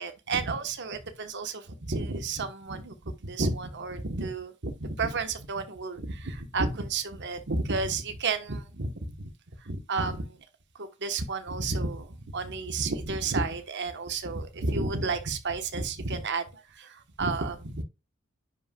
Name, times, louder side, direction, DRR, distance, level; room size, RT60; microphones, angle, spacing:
voice 1, 0.0-9.3 9.6-10.4 10.7-17.8, right 3 dB, 55° right, 1.2 m, -31 dB
10.5 x 5.5 x 2.3 m
head